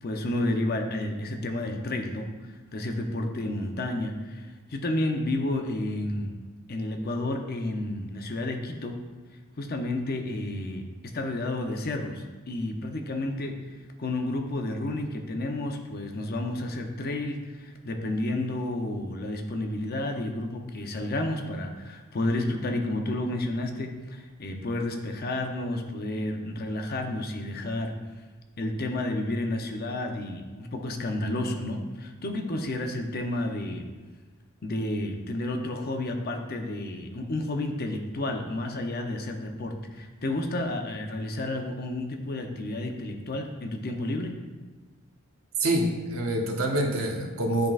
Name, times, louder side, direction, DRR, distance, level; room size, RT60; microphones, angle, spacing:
voice 1, 0.0-6.4 6.7-9.0 9.6-28.0 28.6-33.9 34.6-44.4, left 1 dB, 45° left, 4 dB, 0.6 m, -31 dB
voice 2, 45.6-47.7, right 1 dB, 70° right, 1 dB, 0.8 m, -26 dB
10.5 x 3.8 x 2.4 m, 1.3 s
head